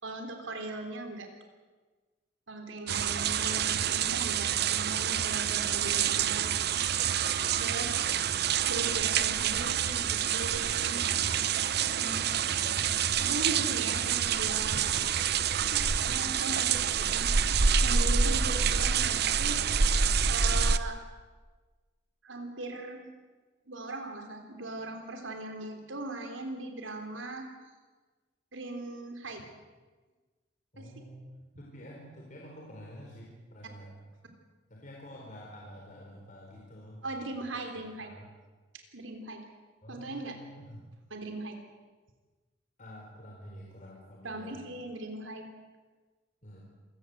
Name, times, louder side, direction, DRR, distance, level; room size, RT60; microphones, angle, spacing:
voice 1, 0.0-1.3 2.5-6.5 7.6-8.2 8.7-11.0 11.8-12.3 13.2-15.0 15.7-19.6 20.3-21.0 22.2-23.1 23.7-27.4 28.5-29.4 30.8-30.9 37.0-38.1 38.9-39.4 39.9-40.4 41.1-41.6 44.2-45.5, right 2 dB, 85° right, 5 dB, 3.6 m, -39 dB
sound 1, 2.9-20.8, right 7 dB, 55° right, 0.8 m, -27 dB
sound 2, 6.6-8.1 10.2-11.3 13.0-13.3 14.9-15.2 17.2-19.1 20.8-20.9, right 5 dB, 35° right, 2.8 m, -48 dB
voice 2, 12.0-12.4 18.6-18.8 30.7-31.3 31.6-33.9 34.7-38.3 39.8-40.9 42.8-44.8 46.4-46.6, equal, 40° left, -2 dB, 4.4 m, -48 dB
27.0 x 17.5 x 8.0 m, 1.3 s
head